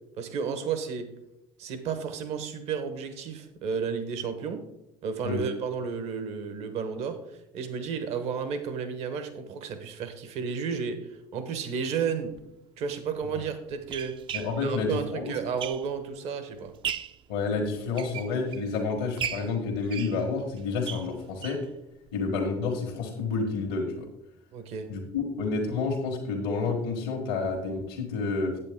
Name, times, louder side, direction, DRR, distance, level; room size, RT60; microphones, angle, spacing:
voice 1, 0.2-1.1 1.6-4.6 5.0-12.3 12.8-14.1 14.6-16.7 24.5-24.9, right 6 dB, 65° right, 9 dB, 1.2 m, -32 dB
sound 1, 12.3-12.4 13.2-16.2 16.6-17.2 17.8-18.7 19.2-21.7 22.1-22.2 22.5-22.6 22.9-23.0, right 8 dB, 45° right, 0.5 m, -37 dB
voice 2, 14.3-15.3 17.3-21.6 22.1-24.1 24.9-28.6, left 4 dB, 90° left, 0 dB, 1.4 m, -29 dB
8.2 x 7.8 x 3.6 m, 0.85 s
supercardioid pair, 85°, 12 cm